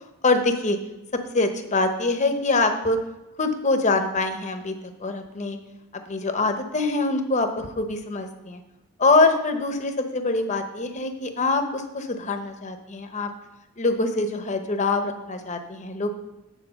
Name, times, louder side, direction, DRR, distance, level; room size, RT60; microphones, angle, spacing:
voice 1, 0.2-0.8 1.3-3.0 3.4-4.7 5.0-5.6 6.1-8.6 9.0-13.3 13.8-16.1, left 3 dB, 35° left, 6 dB, 0.8 m, -24 dB
9.3 x 4.5 x 7.0 m, 0.96 s
head